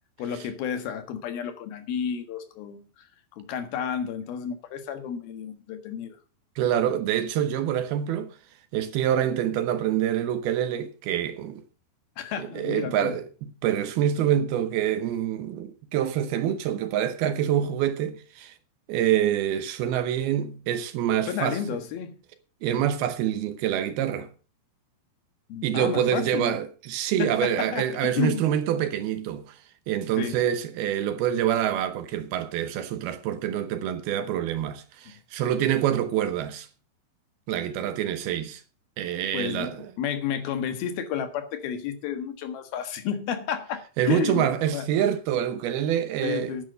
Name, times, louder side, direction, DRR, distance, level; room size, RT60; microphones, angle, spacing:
voice 1, 0.2-3.1 3.3-6.2 12.2-13.2 21.3-22.2 25.5-26.6 27.2-28.5 30.2-30.4 39.3-44.9 46.2-46.6, left 8 dB, 70° left, 3.3 m, -31 dB
voice 2, 6.6-8.4 8.7-11.6 12.4-18.6 18.9-21.6 22.6-24.3 25.6-29.6 29.9-36.7 37.5-38.6 39.0-39.9 44.0-46.6, right 10 dB, 75° right, 2.8 m, -26 dB
10.5 x 9.4 x 6.7 m
omnidirectional pair, 4.6 m